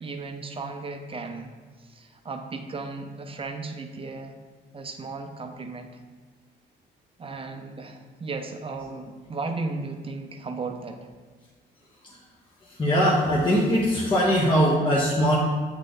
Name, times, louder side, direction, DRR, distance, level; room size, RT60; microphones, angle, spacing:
voice 1, 0.0-1.5 1.8-4.4 4.7-5.9 7.2-11.0, right 3 dB, 25° right, 5 dB, 0.7 m, -35 dB
voice 2, 12.6-15.4, equal, 25° left, -5 dB, 1.0 m, -21 dB
7.9 x 3.2 x 4.0 m, 1.4 s
cardioid pair, 90°, 20 cm